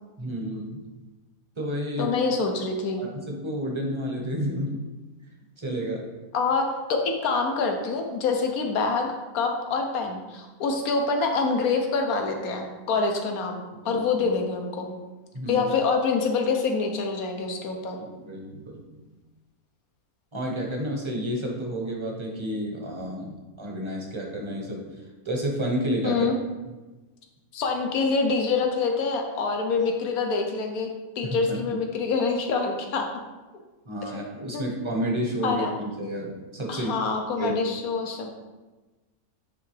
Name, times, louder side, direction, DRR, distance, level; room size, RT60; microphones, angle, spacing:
voice 1, 0.2-0.8 1.6-2.1 3.0-4.8 5.6-6.0 13.8-14.3 15.3-15.7 18.0-18.8 20.3-24.9 25.2-26.2 31.2-31.8 33.8-37.1 37.4-37.5, equal, 25° right, 0 dB, 0.9 m, -30 dB
voice 2, 2.0-3.0 6.3-9.1 9.3-14.9 15.5-18.0 26.0-26.3 27.5-33.1 34.0-34.1 34.5-34.7 35.4-35.7 36.7-38.4, left 4 dB, 85° left, 3 dB, 1.3 m, -26 dB
9.5 x 3.4 x 3.3 m, 1.2 s
omnidirectional pair, 1.5 m